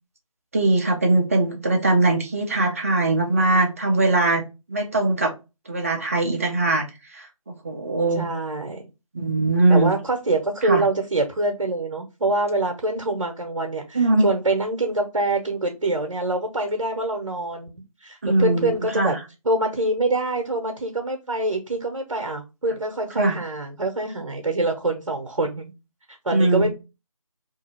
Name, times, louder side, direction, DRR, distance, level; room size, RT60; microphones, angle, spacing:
voice 1, 0.5-4.4 4.7-5.3 5.7-6.8 7.1-8.3 9.1-9.9 10.6-10.8 13.9-14.3 18.2-18.7 19.0-19.1 23.2-23.4 26.3-26.7, right 2 dB, 25° right, 3 dB, 0.5 m, -21 dB
voice 2, 8.1-8.8 9.7-17.7 18.0-19.2 19.4-25.7 26.2-26.7, right 2 dB, 60° right, 3 dB, 0.9 m, -25 dB
2.7 x 2.6 x 4.3 m, 0.27 s
figure-of-eight pair, 160°, 18 cm